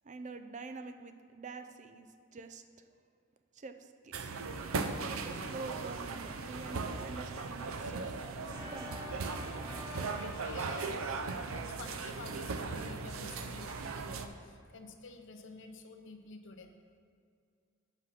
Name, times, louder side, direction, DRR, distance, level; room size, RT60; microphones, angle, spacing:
voice 1, 0.0-2.9 3.5-4.4 5.2-9.0, right 4 dB, 35° right, 9 dB, 0.5 m, -47 dB
sound 1, 4.1-14.3, right 4 dB, 85° right, 0.5 m, -38 dB
Organ, 8.4-13.3, left 1 dB, 15° right, 1.1 m, -49 dB
voice 2, 10.2-11.1 11.5-16.7, left 3 dB, 65° left, 6 dB, 0.7 m, -50 dB
7.9 x 5.7 x 5.8 m, 2.3 s
head